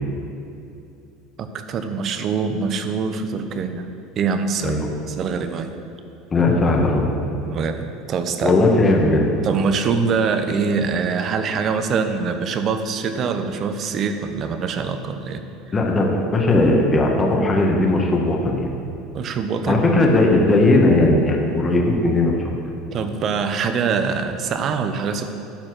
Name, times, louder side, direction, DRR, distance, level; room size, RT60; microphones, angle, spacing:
voice 1, 1.4-3.9 4.1-4.8 5.1-5.7 7.4-8.6 9.4-15.5 19.1-19.8 22.9-25.3, right 5 dB, 40° right, 8 dB, 0.7 m, -24 dB
voice 2, 6.3-7.1 8.4-9.2 15.7-18.7 19.6-22.5, left 2 dB, 25° left, 0 dB, 1.4 m, -17 dB
11.5 x 4.4 x 6.1 m, 2.7 s
supercardioid pair, 110°, 0 cm